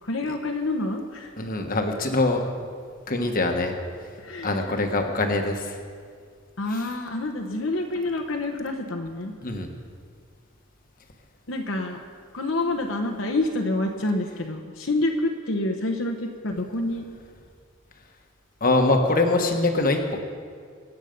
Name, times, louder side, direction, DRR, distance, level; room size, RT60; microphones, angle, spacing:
voice 1, 0.0-1.3 4.2-4.8 6.6-9.3 11.5-12.0 12.3-17.1, left 2 dB, 60° left, 3 dB, 1.1 m, -27 dB
voice 2, 1.4-2.4 3.1-3.7 4.4-5.8 6.7-6.8 9.4-9.7 18.6-20.2, left 2 dB, 40° left, 4 dB, 1.3 m, -23 dB
25.0 x 8.3 x 5.3 m, 2.1 s
head